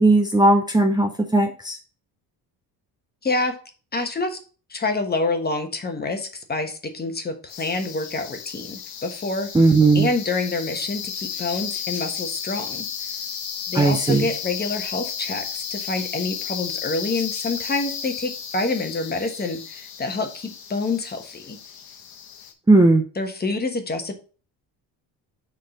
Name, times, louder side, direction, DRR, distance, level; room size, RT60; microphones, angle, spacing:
voice 1, 0.0-1.8 9.5-10.1 13.7-14.3 22.7-23.0, right 2 dB, 10° right, 3 dB, 0.7 m, -17 dB
voice 2, 3.2-3.6 3.9-4.4 4.7-9.5 9.9-12.9 13.7-21.6 23.2-24.1, left 3 dB, 25° left, 6 dB, 1.2 m, -27 dB
sound 1, 7.5-22.5, left 8 dB, 60° left, 1.3 m, -34 dB
6.5 x 3.8 x 5.0 m, 0.37 s
cardioid pair, 115°, 41 cm